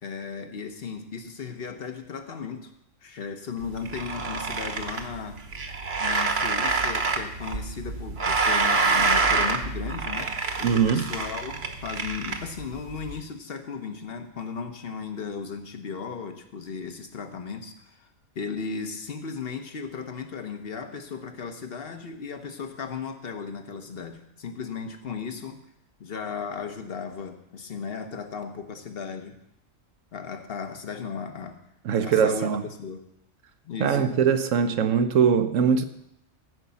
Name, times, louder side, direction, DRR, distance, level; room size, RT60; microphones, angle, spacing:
voice 1, 0.0-2.7 3.0-5.4 6.0-18.1 18.3-25.6 26.0-29.4 30.1-31.6 32.0-33.1 33.6-34.1, left 5 dB, 50° left, 1.3 m, -36 dB
sound 1, 3.6-13.2, right 4 dB, 50° right, 1.3 m, -27 dB
voice 2, 10.6-11.0 31.8-32.6 33.8-35.8, right 7 dB, 75° right, 1.2 m, -21 dB
15.5 x 5.3 x 7.0 m
omnidirectional pair, 1.4 m